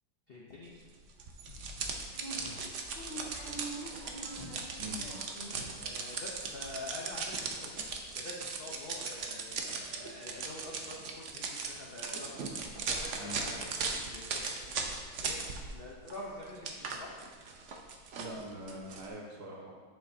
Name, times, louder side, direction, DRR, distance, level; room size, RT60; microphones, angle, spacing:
voice 1, 0.3-0.7 5.8-7.9 8.1-17.1, left 1 dB, 90° left, -4 dB, 0.5 m, -46 dB
sound 1, 1.2-15.8 16.1-19.1, right 4 dB, 85° right, 0.6 m, -38 dB
sound 2, 1.5-6.0 6.2-7.1 7.5-7.6 7.8-8.0, right 1 dB, 25° left, 1.5 m, -45 dB
voice 2, 4.8-5.1 13.2-13.4 18.1-19.7, equal, 55° right, -2 dB, 1.7 m, -43 dB
8.8 x 6.9 x 2.7 m, 1.5 s
omnidirectional pair, 2.2 m